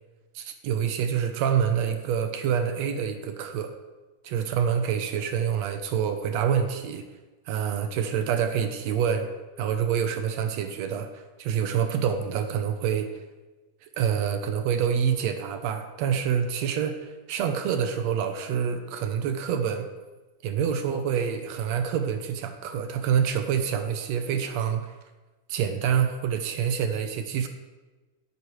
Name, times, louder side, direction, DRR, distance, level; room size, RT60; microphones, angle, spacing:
voice 1, 0.4-3.7 4.2-7.0 7.5-9.3 9.6-13.1 14.0-19.9 20.4-24.8 25.5-27.5, right 8 dB, 70° right, 7 dB, 1.7 m, -27 dB
15.0 x 8.1 x 3.2 m, 1.2 s
omnidirectional pair, 3.7 m